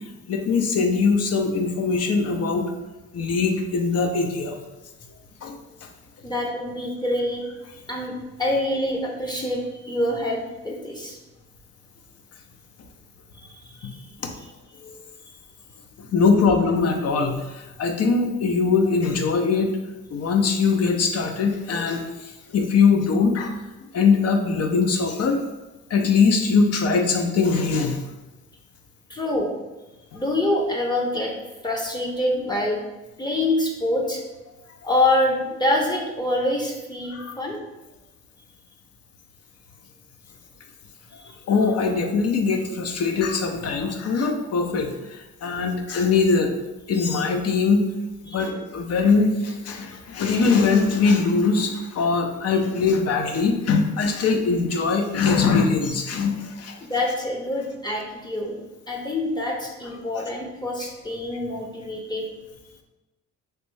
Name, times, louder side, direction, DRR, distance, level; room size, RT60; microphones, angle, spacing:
voice 1, 0.3-2.7 3.1-4.6 5.4-5.6 13.8-13.9 14.8-15.0 16.0-19.8 20.1-23.6 23.9-25.4 25.9-28.0 37.1-37.4 41.5-46.5 46.9-47.9 48.2-56.8, left 4 dB, 55° left, 4 dB, 0.5 m, -22 dB
voice 2, 6.2-7.4 7.9-8.1 8.4-11.2 13.7-13.9 29.1-29.5 30.1-31.3 31.6-32.8 33.2-34.2 34.8-37.6 48.3-48.4 56.8-58.6 58.9-62.3, left 1 dB, 15° left, -1 dB, 0.6 m, -25 dB
3.2 x 2.6 x 3.2 m, 1.1 s
cardioid pair, 90°, 30 cm